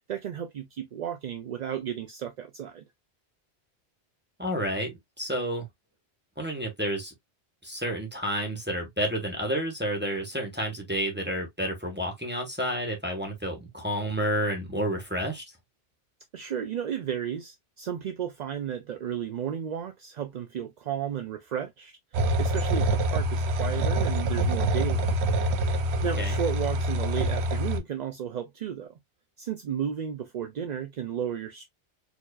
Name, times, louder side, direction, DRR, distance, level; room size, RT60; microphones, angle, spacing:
voice 1, 0.0-2.8 16.3-25.2 26.0-28.9 29.4-31.7, right 9 dB, 55° right, 0.5 m, -33 dB
voice 2, 4.4-5.7 6.4-7.1 7.6-15.5 26.2-26.4, equal, 10° right, 1.1 m, -30 dB
sound 1, 22.1-27.8, right 1 dB, 75° right, 0.9 m, -26 dB
4.5 x 2.7 x 2.3 m
omnidirectional pair, 1.1 m